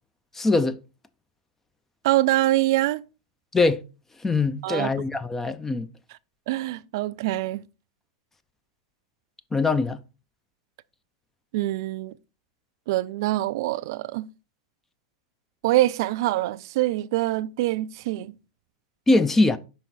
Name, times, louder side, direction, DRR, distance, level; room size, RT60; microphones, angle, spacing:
voice 1, 0.3-0.8 3.5-3.8 4.2-5.9 9.5-10.0 19.1-19.6, left 3 dB, 15° left, 0.4 m, -22 dB
voice 2, 2.0-3.0 4.6-4.9 6.5-7.6 11.5-12.1 12.9-14.3 15.6-18.3, right 16 dB, 60° right, 0.3 m, -24 dB
5.7 x 4.1 x 4.1 m
hypercardioid pair, 110°, 2 cm